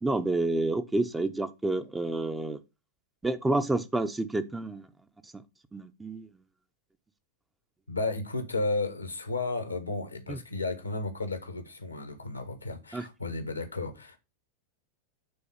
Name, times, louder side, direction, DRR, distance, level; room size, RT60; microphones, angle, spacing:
voice 1, 0.0-2.6 3.2-4.9 5.7-6.3 10.3-10.4 12.9-13.0, right 2 dB, 10° right, 0.7 m, -29 dB
voice 2, 7.9-14.2, left 3 dB, 85° left, 1.5 m, -33 dB
8.7 x 3.9 x 5.7 m
figure-of-eight pair, 90°, 0 cm